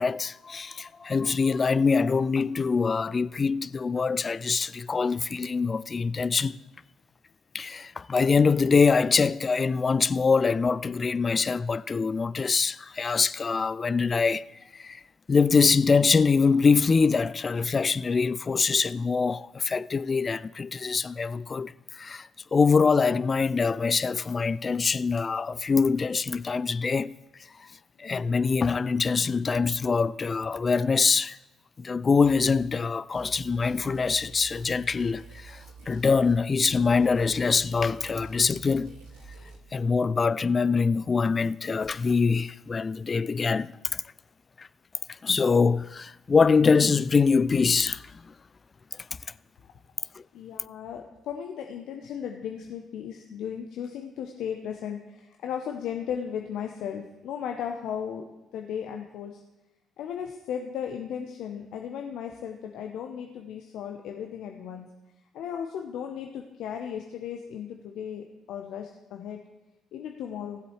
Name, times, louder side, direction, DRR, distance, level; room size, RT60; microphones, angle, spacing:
voice 1, 0.0-6.6 7.5-14.5 14.7-15.0 15.3-27.2 28.0-31.4 31.8-39.0 39.7-44.0 44.6-44.7 45.2-48.3, left 5 dB, 35° left, 0.4 m, -24 dB
sound 1, 32.2-32.7 33.1-36.4 36.7-39.6, right 4 dB, 80° right, 2.2 m, -47 dB
voice 2, 50.3-58.2 58.5-59.4 60.0-64.9 65.3-69.4 69.9-70.6, left 8 dB, 65° left, 0.7 m, -36 dB
17.5 x 7.8 x 3.2 m
hypercardioid pair, 45°, 0 cm